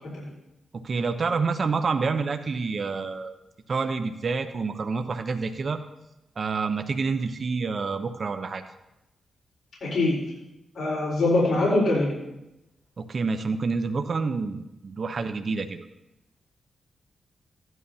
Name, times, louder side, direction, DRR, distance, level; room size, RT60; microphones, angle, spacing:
voice 1, 0.7-3.3 3.7-5.8 6.4-8.6 13.0-15.8, right 4 dB, 55° right, 7 dB, 0.7 m, -28 dB
voice 2, 9.8-10.2 10.7-12.2, left 2 dB, 65° left, -6 dB, 4.0 m, -23 dB
15.5 x 11.0 x 2.8 m, 0.89 s
cardioid pair, 70°, 0 cm